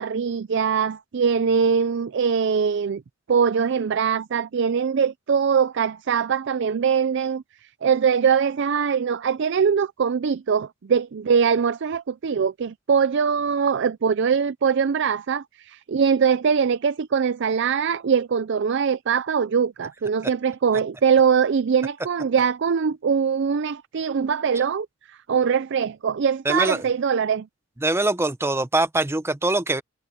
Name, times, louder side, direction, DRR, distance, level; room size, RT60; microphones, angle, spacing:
voice 1, 0.0-3.0 3.3-7.4 7.8-27.5, right 6 dB, 60° right, 0.4 m, -22 dB
voice 2, 26.4-26.8 27.8-29.8, right 2 dB, 15° right, 0.8 m, -23 dB
head